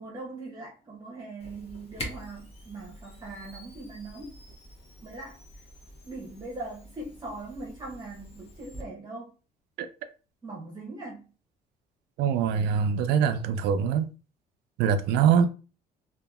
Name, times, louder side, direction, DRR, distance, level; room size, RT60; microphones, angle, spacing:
voice 1, 0.0-4.4 5.0-5.6 6.0-9.3 10.4-11.3, right 2 dB, 25° right, 0.8 m, -41 dB
Camera, 1.4-8.8, equal, 35° left, 0.9 m, -45 dB
voice 2, 12.2-14.1 14.8-15.5, right 7 dB, 85° right, 0.4 m, -23 dB
2.7 x 2.4 x 2.3 m
cardioid pair, 110°, 17 cm